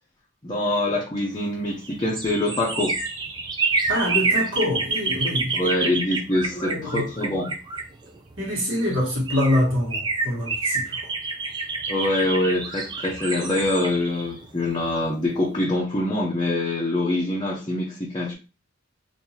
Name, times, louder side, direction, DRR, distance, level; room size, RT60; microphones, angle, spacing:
voice 1, 0.4-2.9 5.5-7.5 11.9-18.3, left 1 dB, 20° left, 0.6 m, -24 dB
sound 1, 1.6-8.4 9.0-9.1 9.3-15.1 15.4-15.5, right 4 dB, 20° right, 0.4 m, -28 dB
sound 2, 2.1-3.7 8.2-8.3 8.8-9.2 11.2-11.3 11.7-11.9 13.1-14.5, right 3 dB, 90° right, 0.8 m, -40 dB
voice 2, 3.9-5.5 6.5-7.1 8.4-11.1, left 1 dB, 70° right, 1.6 m, -25 dB
3.7 x 2.6 x 2.8 m
head